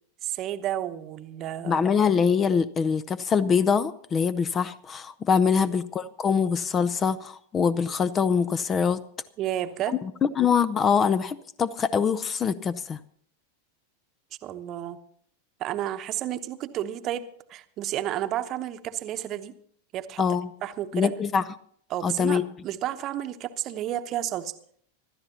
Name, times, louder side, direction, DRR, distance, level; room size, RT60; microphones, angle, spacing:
voice 1, 0.2-1.8 9.4-9.9 14.4-15.0 15.6-19.5 19.9-20.2 20.6-21.1 21.9-24.5, right 12 dB, 35° right, 10 dB, 0.9 m, -31 dB
voice 2, 1.7-9.0 10.0-13.0 20.2-20.5 20.9-21.4 22.0-22.5, left 6 dB, 25° left, 18 dB, 0.5 m, -24 dB
25.5 x 13.0 x 2.8 m, 0.62 s
figure-of-eight pair, 90°, 0 cm